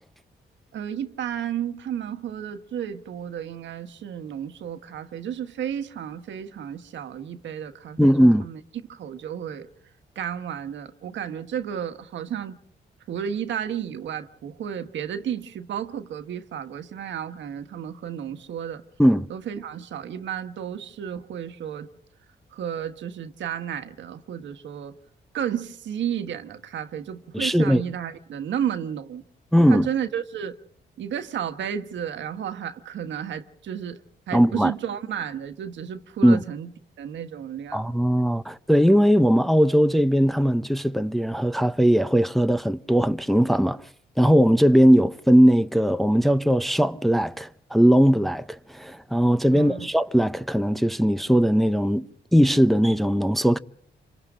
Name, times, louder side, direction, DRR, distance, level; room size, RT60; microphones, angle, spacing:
voice 1, 0.7-8.6 8.9-9.7 10.1-12.6 13.1-18.8 19.3-21.9 22.5-24.9 25.3-29.2 29.7-30.6 31.0-36.7 37.0-37.8 49.5-49.9, right 9 dB, 80° right, 1.5 m, -32 dB
voice 2, 8.0-8.5 19.0-19.3 27.3-27.8 29.5-29.9 34.3-34.7 36.2-36.4 37.7-43.8 44.2-53.6, equal, ahead, 0.8 m, -19 dB
28.0 x 25.5 x 3.8 m
cardioid pair, 80°, 19 cm